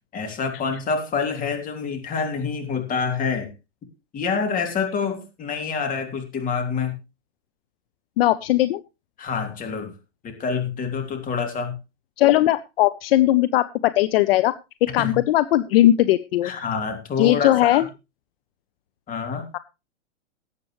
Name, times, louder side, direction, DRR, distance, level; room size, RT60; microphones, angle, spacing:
voice 1, 0.1-3.5 4.1-7.0 9.2-9.9 10.2-11.8 15.0-15.2 16.4-17.8 19.1-19.5, left 5 dB, 25° left, 4 dB, 3.0 m, -27 dB
voice 2, 8.2-8.8 12.2-14.5 14.9-16.5 17.2-17.9 19.5-19.6, left 14 dB, 55° left, 14 dB, 0.7 m, -19 dB
18.5 x 8.5 x 3.2 m, 0.27 s
hypercardioid pair, 130°, 34 cm